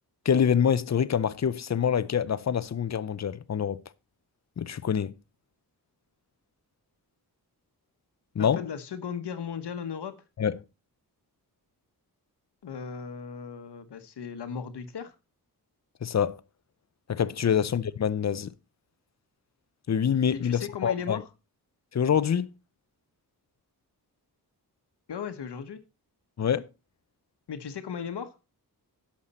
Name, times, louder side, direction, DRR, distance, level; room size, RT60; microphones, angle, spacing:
voice 1, 0.2-3.8 4.6-5.1 8.4-8.6 10.4-10.6 16.0-16.4 17.1-18.5 19.9-21.2 21.9-22.5 26.4-26.7, left 8 dB, 45° left, 0.6 m, -26 dB
voice 2, 8.4-10.1 12.6-15.1 17.4-17.6 20.3-21.3 25.1-25.8 27.5-28.3, left 7 dB, 90° left, 1.1 m, -36 dB
11.0 x 7.3 x 4.2 m
wide cardioid pair, 100°, 39 cm